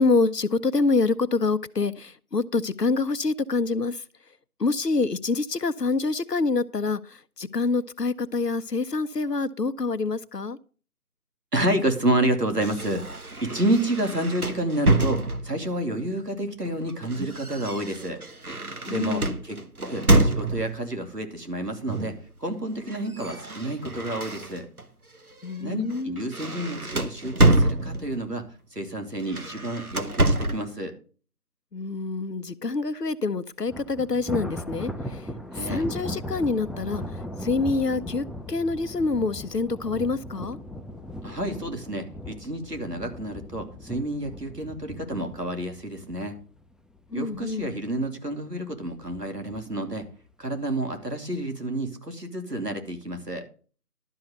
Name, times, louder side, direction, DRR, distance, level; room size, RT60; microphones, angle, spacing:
voice 1, 0.0-4.0 4.6-10.6 18.9-19.4 25.4-26.3 31.7-35.2 35.6-37.0 37.4-40.6 47.1-47.7, left 3 dB, 85° left, 0.9 m, -26 dB
voice 2, 11.5-13.1 13.4-18.2 18.9-22.1 22.4-24.7 25.6-28.4 28.7-30.9 35.5-35.9 41.2-46.4 47.1-50.1 50.4-53.4, right 1 dB, 85° right, 2.9 m, -29 dB
sound 1, 12.6-15.7 16.6-20.9 21.9-22.3 22.5-24.9 25.3-25.5 25.9-28.3 29.2-30.7, right 2 dB, 65° right, 1.2 m, -26 dB
Thunder, 33.7-47.0 47.4-47.7 48.0-48.1 49.0-49.6, left 1 dB, ahead, 0.5 m, -38 dB
12.0 x 5.6 x 6.6 m
figure-of-eight pair, 180°, 47 cm